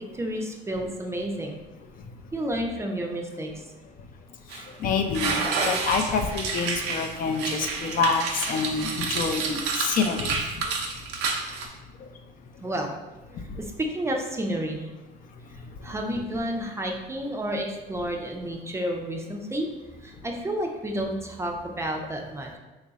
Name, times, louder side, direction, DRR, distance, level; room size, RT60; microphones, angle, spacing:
voice 1, 0.1-1.6 2.3-3.5 12.6-12.9 13.8-14.9 15.8-19.7 20.0-22.6, right 1 dB, 15° right, 2 dB, 0.4 m, -30 dB
sound 1, 4.5-4.7 5.1-11.7, right 4 dB, 90° right, 0.6 m, -29 dB
voice 2, 4.8-10.4, left 5 dB, 55° left, 5 dB, 0.4 m, -27 dB
3.1 x 2.4 x 3.9 m, 1.1 s
cardioid pair, 110°, 17 cm